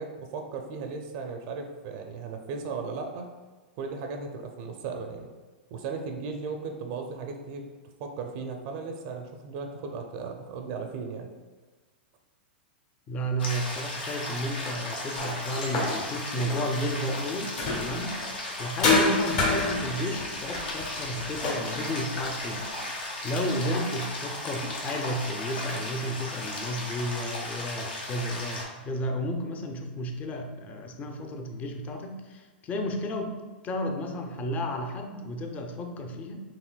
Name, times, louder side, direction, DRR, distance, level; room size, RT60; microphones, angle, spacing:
voice 1, 0.0-3.3 3.8-5.3 5.7-7.6 8.0-11.3, right 4 dB, 50° right, 4 dB, 0.5 m, -36 dB
voice 2, 13.1-17.5 17.8-18.2 18.6-22.6 23.2-36.4, equal, 30° left, 5 dB, 0.5 m, -32 dB
sound 1, 13.4-28.6, left 1 dB, 80° left, 1.1 m, -36 dB
sound 2, 15.2-18.2 18.8-22.7, left 3 dB, 55° left, 1.1 m, -29 dB
4.8 x 3.1 x 2.2 m, 1.3 s
hypercardioid pair, 105°, 6 cm